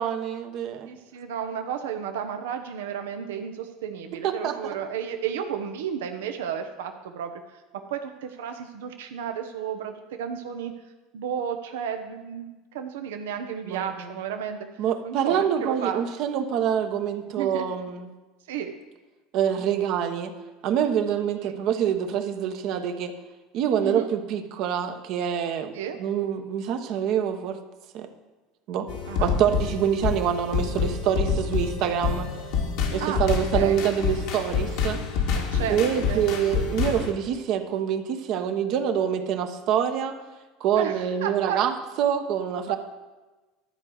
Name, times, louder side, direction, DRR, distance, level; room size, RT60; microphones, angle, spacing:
voice 1, 0.0-0.9 4.2-4.8 13.7-14.1 14.8-18.1 19.3-20.3 20.6-23.1 23.5-27.6 27.9-28.1 28.7-28.9 29.2-32.3 32.9-35.0 35.7-40.2 40.6-41.7 42.0-42.8, right 9 dB, 60° right, 7 dB, 1.1 m, -26 dB
voice 2, 0.9-7.6 7.9-10.7 11.1-14.6 15.0-16.0 17.4-17.6 18.5-18.7 21.4-21.6 23.8-24.1 25.7-26.0 29.1-29.3 33.0-33.3 33.5-33.8 35.3-36.2 40.8-41.6, right 8 dB, 80° right, 6 dB, 0.7 m, -33 dB
sound 1, 28.9-37.1, left 6 dB, 70° left, 1.7 m, -27 dB
12.0 x 4.8 x 7.9 m, 1.2 s
hypercardioid pair, 80°, 0 cm